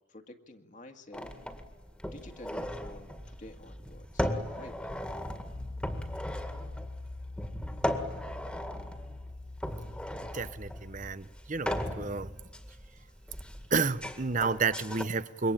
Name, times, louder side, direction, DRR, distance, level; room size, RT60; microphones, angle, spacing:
voice 1, 0.0-1.4 2.1-4.3 4.6-4.8, left 1 dB, 40° left, 5 dB, 1.9 m, -50 dB
sound 1, 1.1-15.0, equal, 5° left, 2.0 m, -38 dB
Piano, 5.5-11.1, left 2 dB, 55° left, 1.1 m, -43 dB
voice 2, 10.3-12.3 13.7-15.5, right 4 dB, 40° right, 15 dB, 0.9 m, -31 dB
27.0 x 24.0 x 8.9 m, 1.2 s
head